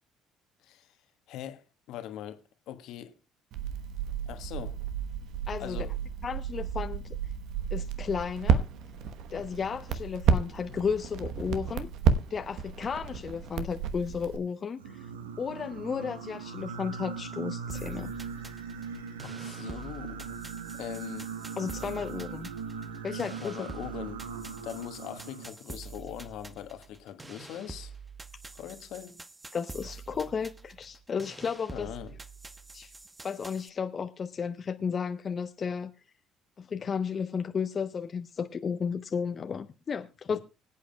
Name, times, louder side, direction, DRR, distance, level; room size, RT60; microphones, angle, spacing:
voice 1, 0.6-1.0 1.3-3.1 4.3-4.8 5.6-5.9 10.7-10.8 19.2-20.4 20.8-21.3 23.1-24.3 24.6-27.9 28.5-29.2 31.7-32.1 40.3-40.4, left 11 dB, 65° left, 1.3 m, -41 dB
Crackle, 3.5-14.4, right 7 dB, 65° right, 1.0 m, -31 dB
voice 2, 5.5-5.9 6.2-7.0 7.7-8.6 9.3-11.9 12.3-15.1 15.4-18.2 21.6-22.5 23.0-23.6 29.5-31.9 32.7-32.9 33.2-35.9 36.6-40.4, left 6 dB, 40° left, 0.7 m, -33 dB
Singing, 14.8-25.5, right 6 dB, 85° right, 1.0 m, -40 dB
sound 1, 17.7-33.7, right 4 dB, 20° right, 1.0 m, -46 dB
25.0 x 8.5 x 2.3 m
hypercardioid pair, 55°, 0 cm